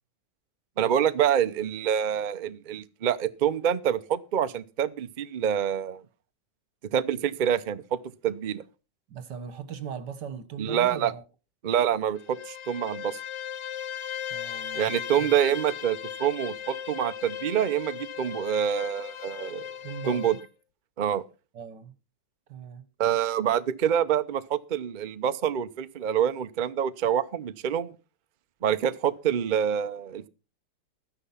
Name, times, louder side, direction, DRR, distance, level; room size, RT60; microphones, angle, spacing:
voice 1, 0.8-6.0 6.9-8.6 10.6-11.1 11.6-13.2 14.7-19.7 20.1-20.4 21.0-21.2 23.0-27.9 28.6-30.3, right 9 dB, 85° right, 0.4 m, -26 dB
voice 2, 9.1-11.2 14.3-15.3 19.8-20.4 21.5-21.9 22.5-22.8, right 7 dB, 65° right, 1.9 m, -39 dB
Bowed string instrument, 12.2-20.5, left 9 dB, 70° left, 1.4 m, -37 dB
13.0 x 10.0 x 5.7 m
omnidirectional pair, 2.0 m